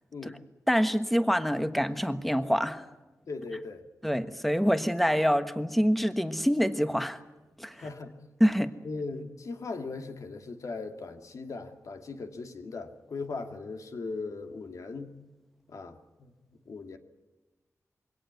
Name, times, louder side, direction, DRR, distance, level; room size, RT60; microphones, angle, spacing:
voice 1, 0.7-2.9 4.0-7.2 7.6-7.9 8.4-8.7, equal, ahead, 10 dB, 1.3 m, -26 dB
voice 2, 3.3-3.9 7.8-8.1 8.8-15.2 15.7-16.3 16.7-17.0, left 3 dB, 65° left, 6 dB, 2.4 m, -38 dB
23.0 x 17.5 x 9.6 m, 1.1 s
wide cardioid pair, 100°, 6 cm